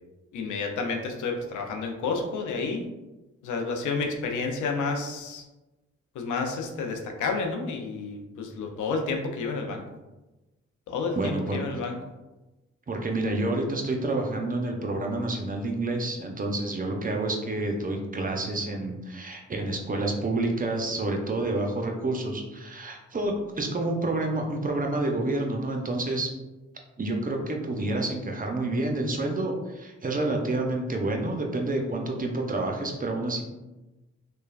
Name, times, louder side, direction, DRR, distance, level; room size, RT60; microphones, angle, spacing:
voice 1, 0.3-2.8 3.4-5.4 6.1-9.8 10.9-12.0, left 4 dB, 80° left, 3 dB, 0.5 m, -30 dB
voice 2, 11.1-11.6 12.9-26.3 27.0-33.4, right 2 dB, 30° right, 2 dB, 0.6 m, -29 dB
3.1 x 2.2 x 2.3 m, 1.1 s
supercardioid pair, 45°, 30 cm